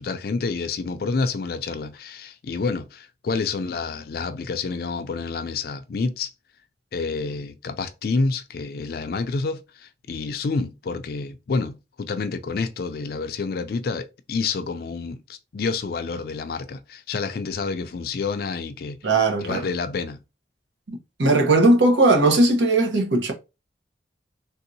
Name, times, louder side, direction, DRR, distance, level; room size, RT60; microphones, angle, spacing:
voice 1, 0.0-6.3 6.9-19.0 19.4-20.2, left 4 dB, 55° left, 0.4 m, -28 dB
voice 2, 19.0-19.7 20.9-23.3, right 2 dB, 80° right, 0.9 m, -18 dB
3.5 x 2.7 x 2.6 m
head